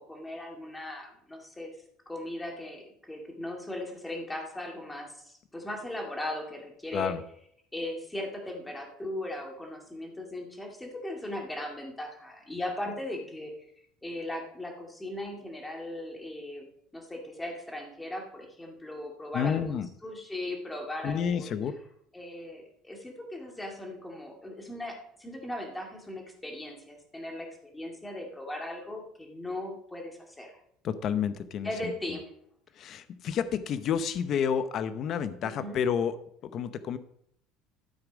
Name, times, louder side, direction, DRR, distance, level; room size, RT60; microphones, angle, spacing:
voice 1, 0.0-1.7 2.1-7.2 7.7-13.5 14.0-16.7 16.9-21.6 22.1-27.5 27.7-30.6 31.6-32.3 35.6-35.8, left 1 dB, 10° left, 1 dB, 2.0 m, -38 dB
voice 2, 19.3-19.9 21.0-21.7 30.8-31.9 32.8-36.1 36.5-37.0, left 7 dB, 40° left, 12 dB, 0.7 m, -30 dB
12.5 x 7.0 x 5.1 m, 0.70 s
cardioid pair, 155°, 0 cm